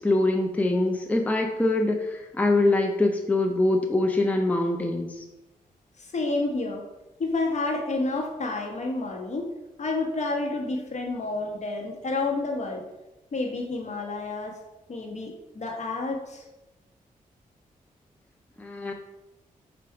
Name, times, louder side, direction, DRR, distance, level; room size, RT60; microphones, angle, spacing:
voice 1, 0.0-5.2 18.6-18.9, left 2 dB, 10° left, 2 dB, 0.5 m, -24 dB
voice 2, 6.0-6.8 7.2-9.5 9.8-12.8 13.3-14.6 14.9-16.4, left 3 dB, 50° left, 1 dB, 1.1 m, -29 dB
4.4 x 2.5 x 4.7 m, 0.98 s
cardioid pair, 55°, 15 cm